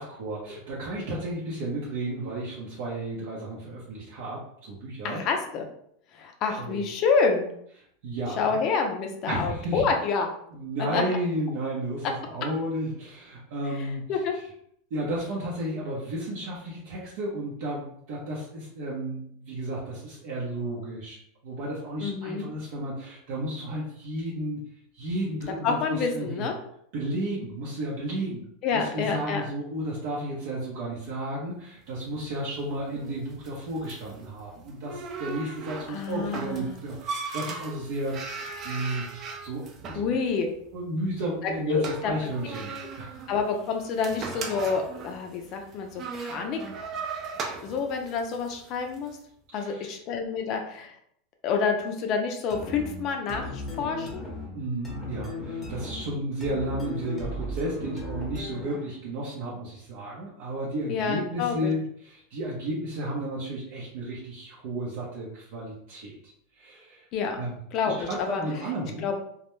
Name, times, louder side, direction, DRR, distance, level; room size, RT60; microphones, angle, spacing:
voice 1, 0.0-5.2 6.6-6.8 8.0-8.6 9.3-9.9 10.5-14.1 14.9-21.2 21.4-24.6 24.9-26.5 26.9-28.5 28.7-38.4 38.6-40.1 40.7-43.2 49.5-49.9 54.5-66.2 66.5-67.1 67.3-67.6 68.0-69.1, right 1 dB, 65° right, -5 dB, 0.7 m, -33 dB
voice 2, 5.0-5.6 6.1-7.5 8.4-10.3 10.9-11.0 14.1-14.3 22.0-22.4 25.6-26.5 28.6-29.4 35.9-36.8 39.9-40.5 41.4-42.1 43.3-46.6 47.6-49.1 49.5-51.0 51.4-54.2 60.9-61.7 67.1-67.4 67.7-68.4 69.0-69.2, left 5 dB, 40° left, 4 dB, 0.4 m, -28 dB
sound 1, 31.9-49.1, right 4 dB, 35° right, 0.4 m, -39 dB
sound 2, 52.5-59.0, left 2 dB, 5° left, 0.8 m, -36 dB
2.3 x 2.1 x 3.0 m, 0.68 s
supercardioid pair, 140°, 0 cm